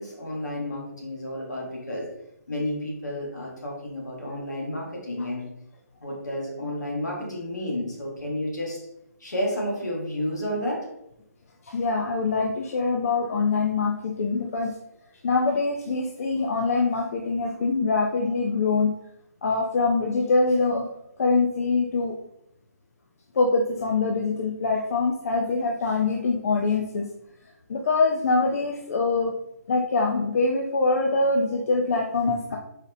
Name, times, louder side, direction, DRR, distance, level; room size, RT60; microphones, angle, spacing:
voice 1, 0.0-2.1 2.5-5.5 6.0-8.8 9.2-10.9, left 1 dB, 80° left, -2 dB, 1.2 m, -31 dB
voice 2, 11.6-14.7 15.2-18.9 19.4-20.9 21.2-22.1 23.3-27.1 27.7-29.3 29.7-32.6, left 3 dB, 55° left, 1 dB, 0.4 m, -24 dB
4.0 x 2.0 x 2.6 m, 0.80 s
figure-of-eight pair, 145°, 9 cm